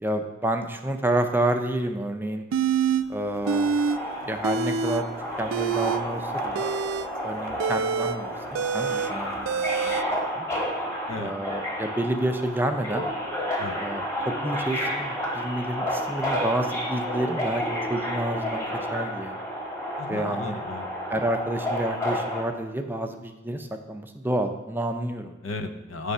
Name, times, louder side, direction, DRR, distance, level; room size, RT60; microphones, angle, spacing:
voice 1, 0.0-2.4 3.1-3.8 4.3-5.1 5.4-6.6 7.2-9.9 10.4-10.5 11.2-13.0 13.8-14.0 14.4-18.7 18.9-19.4 20.1-20.6 21.1-25.3, right 1 dB, 10° right, 5 dB, 0.4 m, -29 dB
sound 1, 2.5-3.0 3.4-4.0 4.3-5.0 5.4-10.0, right 6 dB, 85° right, 0.3 m, -26 dB
Subway metro underground, 3.4-22.4, equal, 15° left, 1.3 m, -31 dB
voice 2, 20.0-20.9 25.4-26.1, left 3 dB, 80° left, 8 dB, 0.6 m, -34 dB
8.2 x 3.3 x 5.4 m, 1.0 s
head